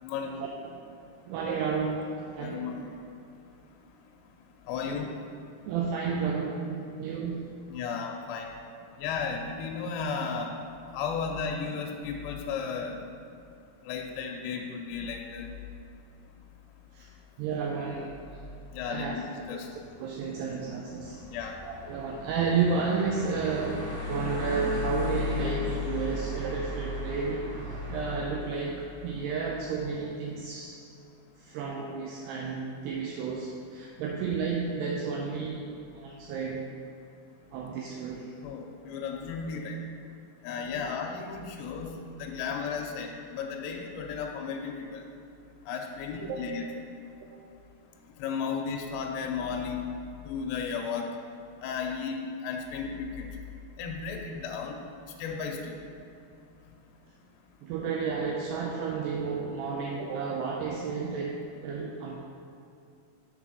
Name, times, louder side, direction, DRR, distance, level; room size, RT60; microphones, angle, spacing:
voice 1, 0.2-0.8 1.3-2.8 4.9-5.0 5.6-7.5 16.9-17.1 17.4-18.2 18.9-19.1 19.5-19.6 20.0-21.2 21.6-30.7 31.4-35.7 35.9-36.7 37.5-38.3 46.2-46.4 46.7-46.8 47.3-47.4 57.6-62.1, right 5 dB, 85° right, -1 dB, 2.4 m, -32 dB
voice 2, 2.4-2.9 4.7-5.1 7.7-8.5 9.0-10.5 10.9-13.0 13.9-15.5 18.7-19.7 21.3-21.5 38.4-39.8 40.4-45.1 45.7-46.7 48.2-49.8 50.3-51.1 51.6-53.3 53.8-54.8 55.2-55.7, left 6 dB, 85° left, 1 dB, 2.6 m, -34 dB
sound 1, 18.0-30.1, left 3 dB, 55° right, 1.3 m, -37 dB
6.7 x 3.8 x 6.2 m, 2.5 s
omnidirectional pair, 5.2 m